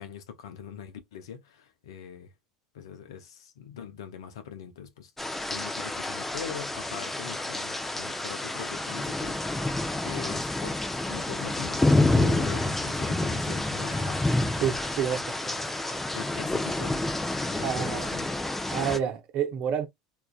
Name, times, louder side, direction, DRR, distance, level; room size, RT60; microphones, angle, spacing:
voice 1, 0.0-2.3 2.7-5.1 5.5-9.7 10.0-14.3 16.1-18.3, left 8 dB, 75° left, 0.5 m, -42 dB
sound 1, 5.2-19.0, left 2 dB, 10° left, 0.5 m, -28 dB
voice 2, 14.6-15.5 17.6-18.1 18.7-19.9, right 8 dB, 55° right, 0.7 m, -29 dB
2.4 x 2.2 x 2.3 m
hypercardioid pair, 80°, 3 cm